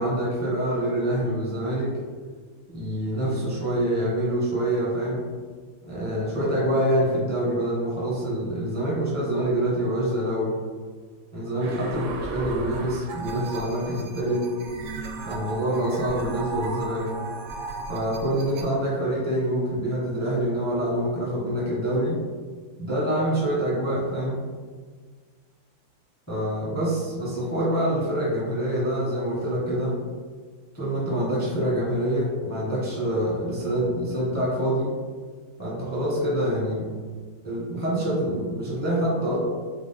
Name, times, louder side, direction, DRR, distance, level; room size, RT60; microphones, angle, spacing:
voice 1, 0.0-1.9 2.7-5.2 5.8-10.6 11.3-14.5 15.2-17.1 17.9-22.2 22.8-24.4 26.3-30.0 30.7-34.9 35.6-36.9 37.4-39.4, right 1 dB, 20° left, -6 dB, 0.5 m, -26 dB
sound 1, 11.6-18.6, right 3 dB, 75° right, 1.1 m, -35 dB
4.7 x 2.1 x 3.6 m, 1.5 s
omnidirectional pair, 2.1 m